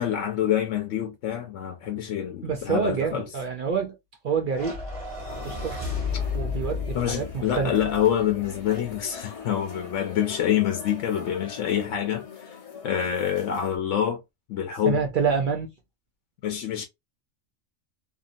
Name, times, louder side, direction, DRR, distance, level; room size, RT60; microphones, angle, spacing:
voice 1, 0.0-3.3 6.9-12.5 12.8-14.2 14.5-15.0 16.4-16.8, left 10 dB, 75° left, 0.9 m, -26 dB
voice 2, 2.4-4.0 4.2-4.8 5.4-5.8 6.3-7.9 14.9-15.7, right 6 dB, 60° right, 0.6 m, -27 dB
sound 1, 4.5-9.0, left 4 dB, 30° right, 1.4 m, -33 dB
sound 2, 5.3-13.8, left 6 dB, 35° left, 0.7 m, -42 dB
2.7 x 2.6 x 2.5 m
omnidirectional pair, 1.3 m